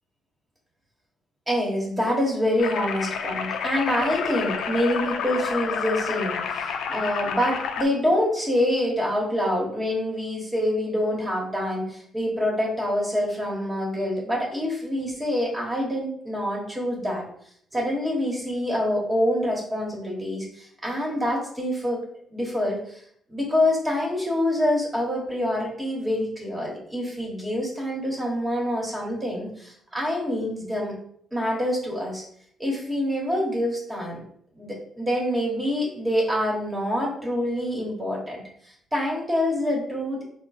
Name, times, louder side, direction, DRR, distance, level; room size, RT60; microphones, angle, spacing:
voice 1, 1.5-17.2 17.7-22.0 22.3-23.0 23.3-31.0 31.3-32.2 32.6-34.2 34.6-40.2, left 1 dB, 15° right, -2 dB, 1.1 m, -26 dB
sound 1, 2.6-7.8, left 6 dB, 75° left, 0.4 m, -29 dB
3.7 x 2.0 x 4.0 m, 0.66 s
cardioid pair, 90°, 0 cm